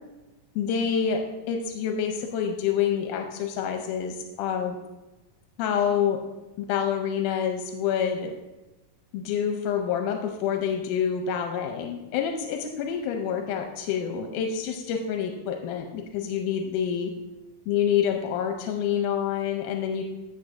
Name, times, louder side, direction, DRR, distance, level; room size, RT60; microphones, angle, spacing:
voice 1, 0.6-1.2 1.5-4.8 5.6-6.2 6.6-8.3 9.1-17.1 17.7-20.0, left 8 dB, 90° left, 3 dB, 2.2 m, -27 dB
14.5 x 6.6 x 2.6 m, 1.1 s
omnidirectional pair, 3.7 m